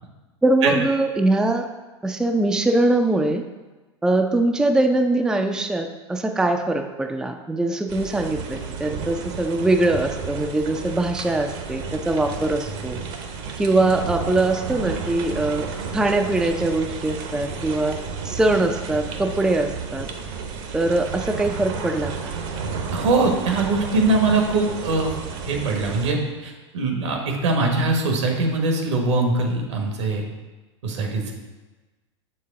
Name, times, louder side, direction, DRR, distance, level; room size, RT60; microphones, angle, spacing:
voice 1, 0.4-1.7 2.0-3.4 4.0-13.0 13.6-18.0 18.2-20.1 20.7-22.3, right 2 dB, 5° right, 4 dB, 0.4 m, -22 dB
sound 1, 7.9-26.1, right 5 dB, 55° right, 0.9 m, -32 dB
voice 2, 22.9-25.1 25.4-30.2 30.8-31.3, right 3 dB, 75° right, 2 dB, 1.3 m, -22 dB
6.5 x 4.7 x 3.7 m, 1.2 s
hypercardioid pair, 95°, 15 cm